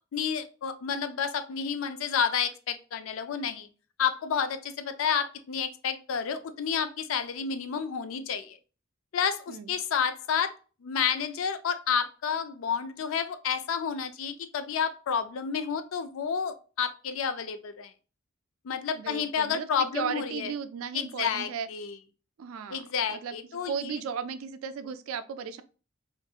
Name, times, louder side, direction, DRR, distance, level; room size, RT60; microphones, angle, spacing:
voice 1, 0.1-3.7 4.0-8.6 9.1-10.5 10.8-17.9 18.6-20.5 20.9-21.9 22.7-24.0, left 7 dB, 70° left, 0.4 m, -30 dB
voice 2, 18.9-21.7 22.4-22.8 23.1-23.3 23.6-25.6, right 7 dB, 85° right, 0.3 m, -35 dB
2.7 x 2.5 x 2.3 m
head